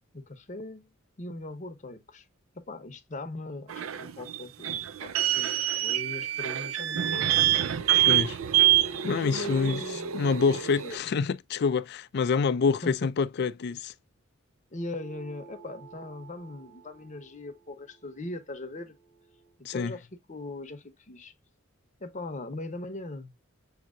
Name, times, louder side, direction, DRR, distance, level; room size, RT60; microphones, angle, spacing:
voice 1, 0.1-0.9 1.2-2.3 2.5-7.5 9.1-10.4 10.8-11.0 12.7-13.1 14.7-19.0 19.6-21.3 22.0-23.3, left 2 dB, 35° left, 0.8 m, -40 dB
sound 1, 3.7-11.0, right 13 dB, 80° right, 0.4 m, -26 dB
voice 2, 8.1-8.4 9.0-9.8 10.1-13.9 19.6-19.9, left 5 dB, 55° left, 0.4 m, -27 dB
sound 2, 14.7-19.6, right 6 dB, 50° right, 4.0 m, -53 dB
7.3 x 2.8 x 2.5 m
head